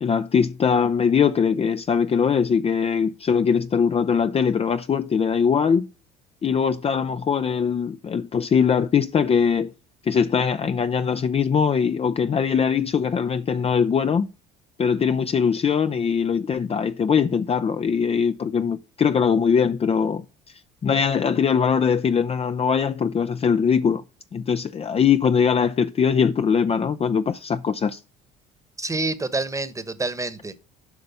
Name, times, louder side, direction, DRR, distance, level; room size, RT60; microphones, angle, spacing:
voice 1, 0.0-5.9 6.4-9.7 10.1-14.3 14.8-20.2 20.8-24.0 24.3-28.0, left 6 dB, 30° left, 0.5 m, -21 dB
voice 2, 28.8-30.6, right 2 dB, 15° right, 1.2 m, -27 dB
8.2 x 5.2 x 7.0 m
hypercardioid pair, 70°, 20 cm